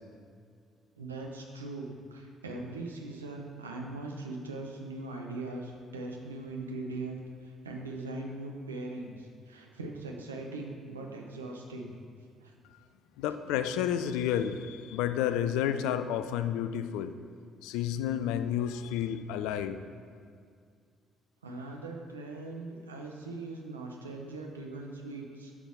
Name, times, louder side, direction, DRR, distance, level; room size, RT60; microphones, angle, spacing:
voice 1, 1.0-11.9 12.4-12.5 13.3-13.4 21.4-25.5, right 2 dB, 85° right, 1 dB, 0.8 m, -40 dB
voice 2, 13.2-17.1 17.6-19.8, left 10 dB, 65° left, 11 dB, 0.4 m, -31 dB
9.7 x 6.1 x 3.6 m, 2.2 s
figure-of-eight pair, 50°, 0 cm